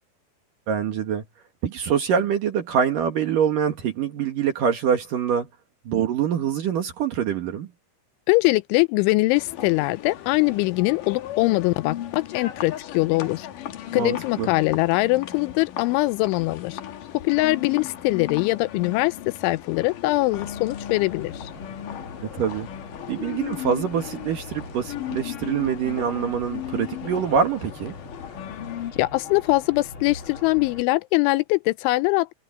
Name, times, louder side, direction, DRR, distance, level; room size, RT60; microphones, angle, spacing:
voice 1, 0.7-1.2 1.6-5.5 5.9-7.7 13.9-14.5 22.4-22.7 23.1-28.0, right 8 dB, 60° right, 2.6 m, -25 dB
voice 2, 8.3-13.5 13.9-16.8 17.2-21.5 29.0-32.3, left 21 dB, 85° left, 2.9 m, -22 dB
sound 1, 9.3-28.9, left 12 dB, 60° left, 2.4 m, -36 dB
sound 2, 20.3-30.8, left 4 dB, 30° left, 3.2 m, -41 dB
omnidirectional pair, 5.5 m